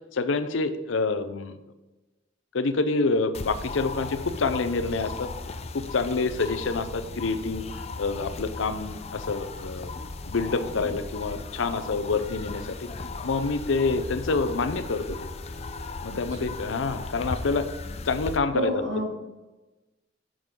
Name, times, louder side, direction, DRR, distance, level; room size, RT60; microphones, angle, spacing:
voice 1, 0.1-1.6 2.5-5.3 5.7-9.9 10.3-12.9 13.2-15.3 16.0-17.7 18.0-18.8, left 3 dB, 90° left, 11 dB, 0.6 m, -27 dB
sound 1, 3.3-18.4, left 3 dB, 35° left, 0.5 m, -37 dB
voice 2, 16.1-16.5 18.5-19.1, right 1 dB, 70° right, -1 dB, 2.0 m, -30 dB
8.9 x 6.2 x 3.7 m, 1.1 s
head